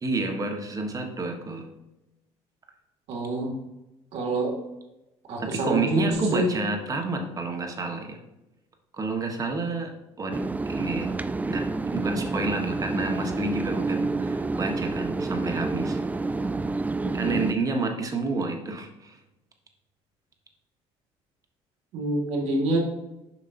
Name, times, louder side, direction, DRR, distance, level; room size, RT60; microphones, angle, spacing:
voice 1, 0.0-1.6 5.4-8.2 8.9-11.1 11.4-16.0 17.1-19.2, right 3 dB, 30° right, 3 dB, 1.3 m, -29 dB
voice 2, 3.1-3.5 4.1-4.6 5.3-6.5 17.0-17.4 21.9-22.8, right 2 dB, 65° right, -1 dB, 2.1 m, -27 dB
sound 1, 10.3-17.5, right 3 dB, 15° right, 0.3 m, -29 dB
7.2 x 5.3 x 2.6 m, 0.95 s
supercardioid pair, 95°, 12 cm